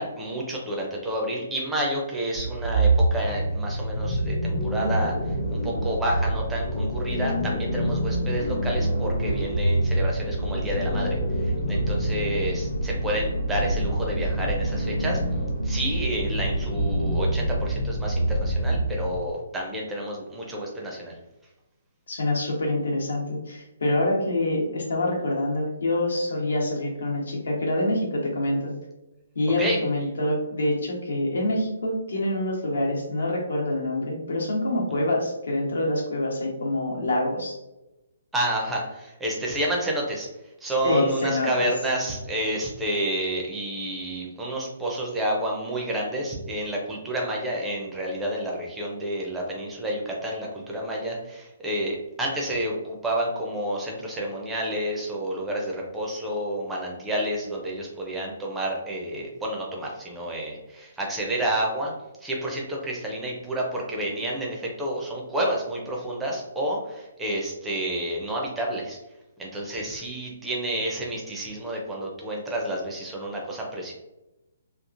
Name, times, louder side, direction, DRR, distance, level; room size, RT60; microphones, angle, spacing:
voice 1, 0.0-15.2 15.6-21.2 29.6-29.8 38.3-40.3 40.6-61.9 62.2-69.0 69.4-73.9, right 1 dB, 5° right, -2 dB, 0.4 m, -30 dB
sound 1, 2.4-19.2, right 1 dB, 45° left, 0.7 m, -26 dB
voice 2, 22.1-28.7 29.3-37.6 40.8-41.7, left 1 dB, 80° left, -1 dB, 1.0 m, -26 dB
2.9 x 2.3 x 2.4 m, 0.95 s
hypercardioid pair, 175°, 0 cm